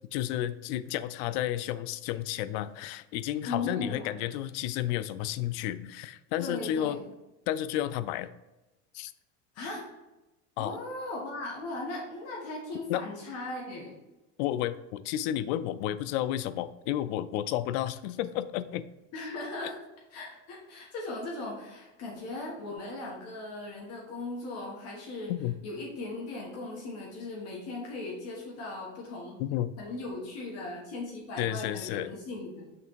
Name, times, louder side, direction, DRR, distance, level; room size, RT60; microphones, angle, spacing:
voice 1, 0.1-7.0 7.5-8.3 8.9-9.1 10.6-10.8 12.9-13.0 14.4-18.8 25.3-25.5 29.4-29.7 31.4-32.1, left 12 dB, 85° left, 14 dB, 0.5 m, -32 dB
voice 2, 3.4-4.2 6.4-7.0 9.5-9.9 10.6-14.0 19.1-19.8 20.1-25.3 25.6-29.4 29.8-32.7, left 2 dB, 50° left, -2 dB, 1.5 m, -38 dB
5.9 x 3.4 x 4.6 m, 1.0 s
cardioid pair, 150°, 32 cm